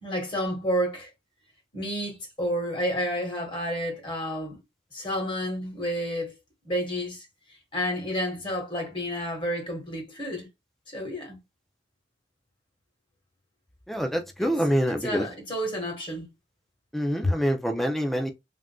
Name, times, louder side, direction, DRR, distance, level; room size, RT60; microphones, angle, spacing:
voice 1, 0.0-1.1 1.7-4.6 4.9-6.3 6.6-7.3 7.7-10.5 10.9-11.4 14.4-14.5 14.9-16.3, equal, 30° left, 1.3 m, -30 dB
voice 2, 13.9-15.2 16.9-18.3, equal, ahead, 0.3 m, -26 dB
3.5 x 2.4 x 2.2 m
head